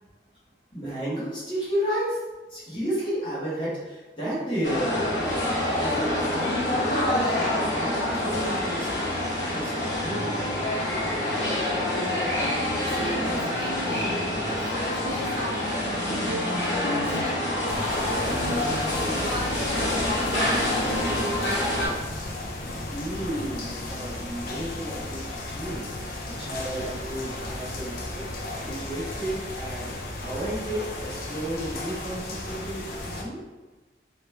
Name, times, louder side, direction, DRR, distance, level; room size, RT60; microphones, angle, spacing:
voice 1, 0.7-2.2 2.5-5.4 5.8-10.6 22.9-33.4, right 1 dB, 30° left, -9 dB, 1.5 m, -33 dB
sound 1, 4.6-21.9, left 1 dB, 90° left, 1.3 m, -26 dB
voice 2, 12.7-20.6 20.9-21.8, right 1 dB, 30° right, -7 dB, 0.7 m, -36 dB
sound 2, 17.7-33.2, left 2 dB, 55° left, 0.6 m, -35 dB
3.1 x 3.1 x 3.3 m, 1.1 s
head